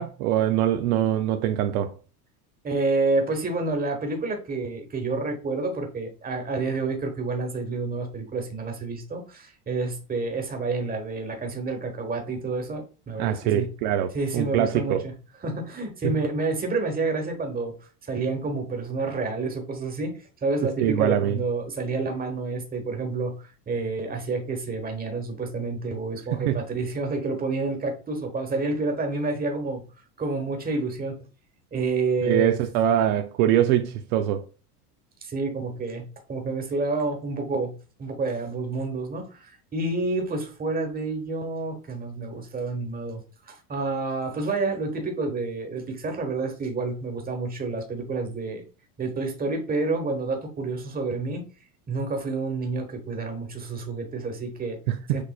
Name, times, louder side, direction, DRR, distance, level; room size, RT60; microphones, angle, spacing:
voice 1, 0.0-1.9 13.2-15.0 16.0-16.2 20.8-21.4 26.4-26.6 32.2-34.4 54.9-55.2, right 11 dB, 65° right, 0.6 m, -23 dB
voice 2, 2.6-13.6 14.1-15.1 15.4-17.7 18.0-29.8 30.2-31.2 31.7-32.5 35.2-37.7 38.0-48.6 49.0-51.4 51.9-54.8 55.1-55.2, right 3 dB, 20° right, 1.2 m, -29 dB
6.4 x 2.5 x 2.3 m
supercardioid pair, 110°, 47 cm